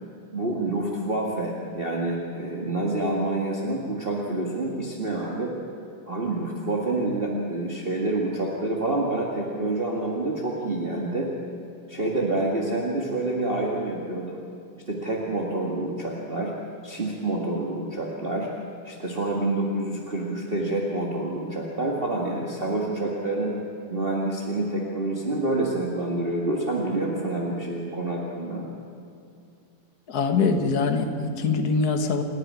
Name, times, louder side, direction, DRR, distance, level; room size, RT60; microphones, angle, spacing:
voice 1, 0.3-5.5 6.1-11.3 11.9-14.4 14.9-16.5 16.8-18.5 18.8-23.6 23.9-28.6, right 2 dB, 25° right, -2 dB, 1.3 m, -27 dB
voice 2, 30.1-32.2, left 4 dB, 60° left, 5 dB, 0.9 m, -23 dB
29.0 x 12.0 x 9.8 m, 2.5 s
omnidirectional pair, 4.1 m